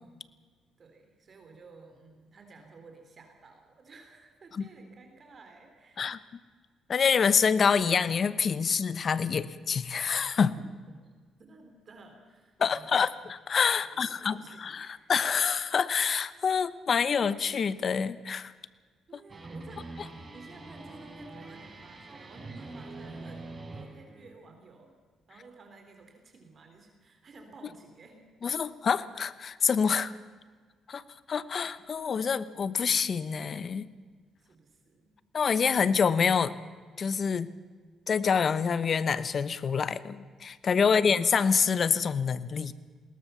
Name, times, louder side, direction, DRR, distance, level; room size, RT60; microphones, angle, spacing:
voice 1, 0.8-6.2 10.6-10.7 11.0-11.1 11.4-12.9 13.8-15.1 19.1-24.9 25.3-28.5 34.4-35.1 40.8-41.3, right 3 dB, 45° right, 4 dB, 3.7 m, -53 dB
voice 2, 6.9-10.6 12.6-18.5 28.4-30.1 30.9-31.0 31.3-33.9 35.3-36.5 37.0-37.5 38.1-42.7, left 6 dB, 50° left, 15 dB, 0.9 m, -26 dB
sound 1, 19.3-24.3, right 2 dB, 30° right, 4.1 m, -44 dB
21.0 x 18.5 x 7.1 m, 1.6 s
cardioid pair, 90°, 0 cm